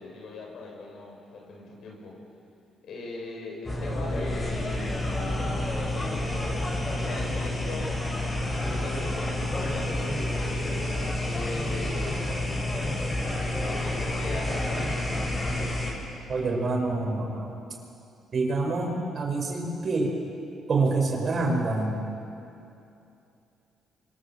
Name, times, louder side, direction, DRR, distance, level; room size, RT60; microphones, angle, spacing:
voice 1, 0.0-2.2 2.8-4.9 5.3-6.4 6.9-8.0 8.3-10.0 10.9-12.2 13.2-15.1, left 2 dB, 70° left, -1 dB, 7.4 m, -40 dB
sound 1, 3.6-15.9, left 1 dB, 25° left, 7.4 m, -29 dB
voice 2, 16.3-17.5 18.3-20.1 20.7-22.0, right 3 dB, 50° right, 1 dB, 5.7 m, -26 dB
26.0 x 25.0 x 7.7 m, 2.7 s
cardioid pair, 90°, 0 cm